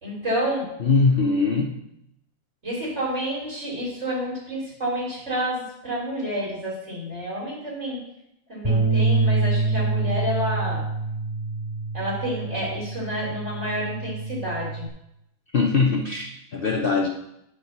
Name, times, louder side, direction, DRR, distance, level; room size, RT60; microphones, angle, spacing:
voice 1, 0.0-0.7 2.6-8.0 8.5-10.8 11.9-14.9, equal, 35° right, -4 dB, 3.9 m, -29 dB
voice 2, 0.8-1.7 15.5-17.1, left 4 dB, 75° left, 2 dB, 0.5 m, -21 dB
Bass guitar, 8.6-14.9, right 3 dB, 5° right, 3.8 m, -26 dB
10.0 x 5.0 x 6.6 m, 0.81 s
omnidirectional pair, 2.1 m